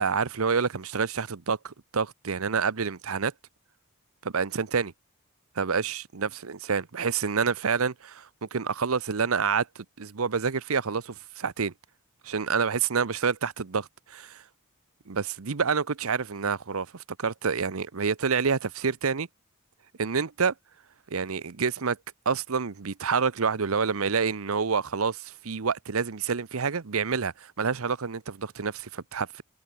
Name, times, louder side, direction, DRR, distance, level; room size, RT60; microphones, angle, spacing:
voice 1, 0.0-3.3 4.2-4.9 5.6-11.7 12.2-14.4 15.1-19.3 20.0-20.5 21.1-22.0 22.3-29.4, right 5 dB, 75° right, 0.8 m, -28 dB
head